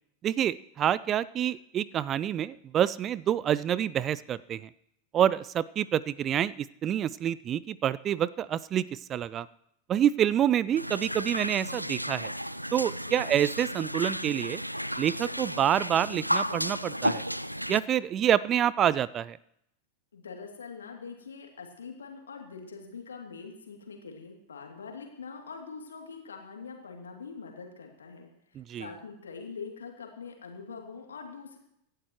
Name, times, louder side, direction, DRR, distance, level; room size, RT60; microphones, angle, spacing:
voice 1, 0.2-4.7 5.1-8.8 9.1-9.5 9.9-12.3 12.7-14.6 15.0-17.2 17.7-19.4 28.6-28.9, right 10 dB, 30° right, 20 dB, 0.4 m, -27 dB
sound 1, 10.8-17.8, equal, 90° right, 0.4 m, -33 dB
voice 2, 13.0-13.3 20.1-31.6, left 5 dB, 70° left, 2 dB, 2.8 m, -44 dB
26.0 x 11.5 x 3.1 m, 0.76 s
figure-of-eight pair, 90°, 0 cm